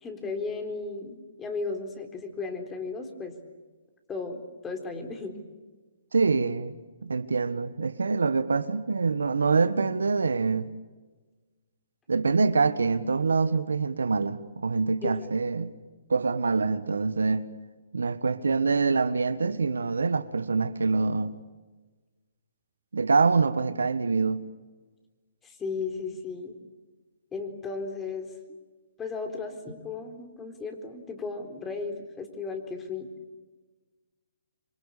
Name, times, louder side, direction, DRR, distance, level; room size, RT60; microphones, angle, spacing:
voice 1, 0.0-3.4 4.1-5.4 15.0-15.2 25.4-26.5 27.3-28.3 29.0-33.1, left 4 dB, 15° left, 4.0 m, -35 dB
voice 2, 6.1-6.8 7.0-10.7 12.1-15.7 16.1-17.5 17.9-21.4 22.9-24.5, right 4 dB, 85° right, 1.5 m, -25 dB
26.5 x 24.5 x 8.5 m
hypercardioid pair, 140°, 0 cm